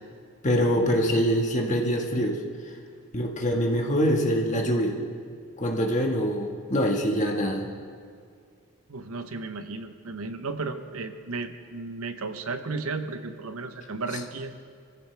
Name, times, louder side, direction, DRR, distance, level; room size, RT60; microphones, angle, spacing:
voice 1, 0.4-2.4 3.1-4.9 5.6-7.7, equal, 35° left, 1 dB, 1.6 m, -24 dB
voice 2, 8.9-14.5, right 3 dB, 80° right, 8 dB, 1.0 m, -34 dB
24.0 x 15.0 x 3.4 m, 2.2 s
head